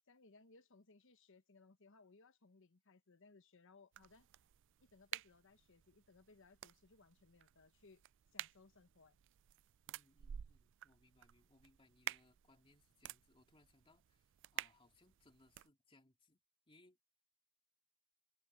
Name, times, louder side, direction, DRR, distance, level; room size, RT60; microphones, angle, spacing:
voice 1, 0.0-4.3 4.8-8.0 8.3-9.2, left 3 dB, 60° left, 1.2 m, -65 dB
sound 1, 3.9-15.7, right 12 dB, 60° right, 0.4 m, -52 dB
voice 2, 9.9-17.0, left 2 dB, 25° left, 2.8 m, -70 dB
head